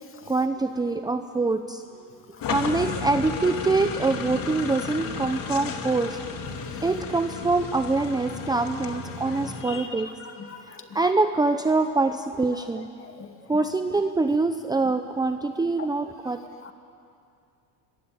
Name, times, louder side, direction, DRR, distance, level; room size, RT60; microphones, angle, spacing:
voice 1, 0.3-1.8 2.5-6.2 6.8-10.2 10.6-12.9 13.5-16.4, right 3 dB, 10° right, 7 dB, 0.8 m, -25 dB
sound 1, 2.4-9.6, left 5 dB, 50° left, 2.7 m, -33 dB
voice 2, 10.2-10.8 13.0-13.3 16.6-16.7, left 5 dB, 30° left, 6 dB, 2.3 m, -41 dB
26.0 x 22.5 x 9.0 m, 2.5 s
cardioid pair, 120°, 44 cm